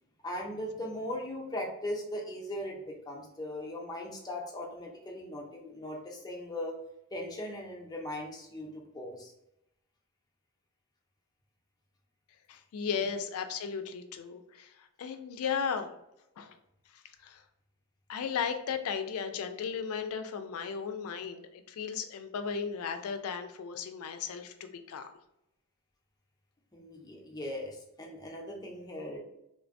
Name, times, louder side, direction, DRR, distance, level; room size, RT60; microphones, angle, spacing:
voice 1, 0.2-6.8 7.1-9.3 12.9-13.1 26.7-29.2, left 1 dB, 15° left, -1 dB, 0.5 m, -39 dB
voice 2, 12.5-14.7 15.0-16.0 16.4-16.5 17.2-17.4 18.1-25.1, left 6 dB, 80° left, 8 dB, 0.4 m, -35 dB
3.2 x 2.1 x 2.5 m, 0.83 s
head